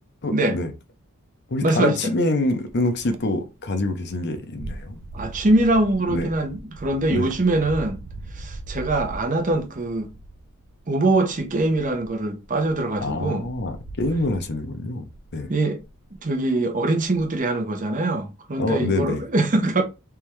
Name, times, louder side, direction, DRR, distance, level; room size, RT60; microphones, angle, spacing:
voice 1, 0.2-0.7 1.5-5.0 6.1-6.3 7.1-7.3 13.0-15.5 18.6-19.2, left 2 dB, 50° left, 0.7 m, -26 dB
voice 2, 1.6-2.1 5.1-8.0 8.3-10.1 10.9-13.5 15.5-15.8 16.2-19.8, right 2 dB, 35° right, 0.7 m, -23 dB
sound 1, 2.5-3.4 3.7-14.6 15.0-15.4 15.8-16.3 17.0-17.4, right 2 dB, 75° right, 0.5 m, -40 dB
3.5 x 3.2 x 3.1 m
head